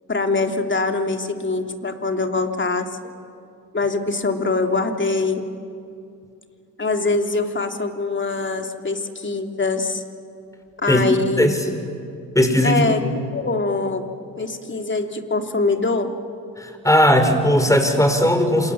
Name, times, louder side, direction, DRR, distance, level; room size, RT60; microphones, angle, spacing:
voice 1, 0.1-3.1 3.7-5.4 6.8-10.0 10.8-11.5 12.6-14.0 14.4-16.2, left 3 dB, 30° left, 5 dB, 3.3 m, -23 dB
voice 2, 12.3-12.8 16.6-18.7, equal, 10° left, 6 dB, 5.2 m, -17 dB
27.5 x 27.5 x 7.5 m, 2.5 s
hypercardioid pair, 55°, 40 cm